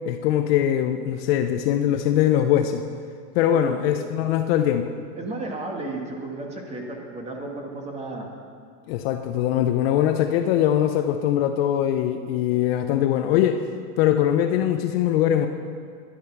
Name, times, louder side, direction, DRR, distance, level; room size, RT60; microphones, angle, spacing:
voice 1, 0.1-2.8 3.3-4.9 8.9-13.7 14.0-15.5, left 11 dB, 45° left, 7 dB, 0.6 m, -22 dB
voice 2, 3.5-3.9 5.2-8.3, right 2 dB, 15° right, 1 dB, 1.5 m, -33 dB
12.0 x 11.0 x 5.8 m, 2.3 s
supercardioid pair, 160°, 43 cm